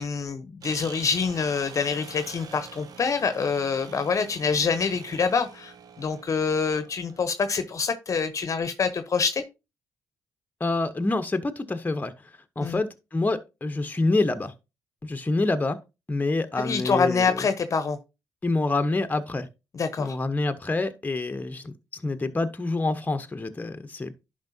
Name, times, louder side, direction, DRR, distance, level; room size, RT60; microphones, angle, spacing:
voice 1, 0.0-9.4 12.6-12.8 16.6-18.0 19.7-20.2, left 5 dB, 50° left, 0.9 m, -26 dB
sound 1, 0.6-7.3, right 6 dB, 65° right, 0.8 m, -45 dB
voice 2, 10.6-12.1 12.6-14.5 15.0-15.8 16.1-17.5 18.4-19.5 20.0-24.1, left 2 dB, 25° left, 1.0 m, -27 dB
10.5 x 5.2 x 2.7 m
supercardioid pair, 45°, 7 cm